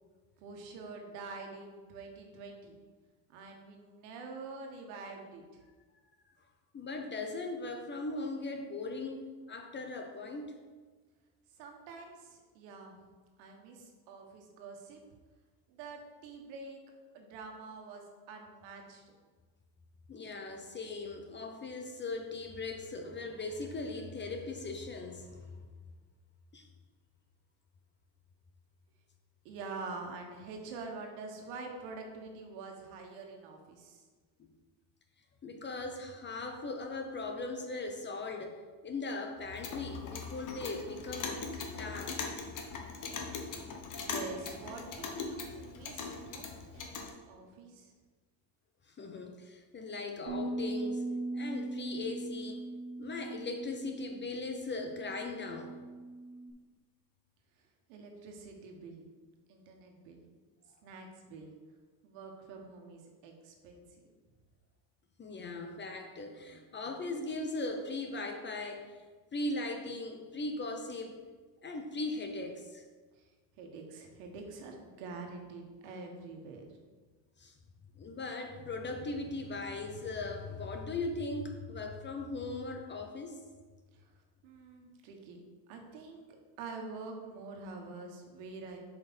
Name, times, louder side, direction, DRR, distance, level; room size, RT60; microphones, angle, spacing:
voice 1, 0.4-2.8 3.3-5.6 11.5-13.0 13.4-15.0 15.7-16.8 17.1-19.1 29.4-34.0 44.0-47.9 57.9-59.0 59.5-60.2 60.8-61.5 62.0-64.1 73.1-73.3 73.6-76.7 83.9-84.1 84.4-85.4 85.7-86.2 86.6-88.8, right 4 dB, 70° right, 2 dB, 1.6 m, -46 dB
voice 2, 6.7-10.5 20.1-25.6 26.5-26.6 35.4-41.4 41.8-42.3 49.0-51.0 51.3-52.6 53.0-55.7 65.2-68.9 69.3-71.2 71.6-72.8 77.4-77.5 78.0-83.4, left 2 dB, 20° left, 4 dB, 0.7 m, -39 dB
Clock, 39.4-47.1, left 4 dB, 40° left, 1.2 m, -40 dB
Bass guitar, 50.3-56.5, right 2 dB, 90° right, 1.6 m, -40 dB
6.8 x 5.2 x 4.4 m, 1.4 s
supercardioid pair, 105°, 50 cm